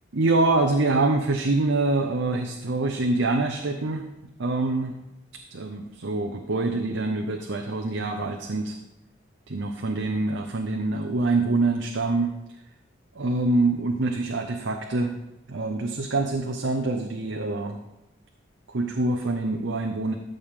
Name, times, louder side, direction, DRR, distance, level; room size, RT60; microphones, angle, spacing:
voice 1, 0.1-4.1 4.4-4.9 5.5-8.8 9.5-12.3 13.1-15.1 15.5-17.8 18.7-20.1, right 2 dB, 75° right, 4 dB, 0.7 m, -25 dB
13.5 x 6.6 x 3.7 m, 0.93 s
head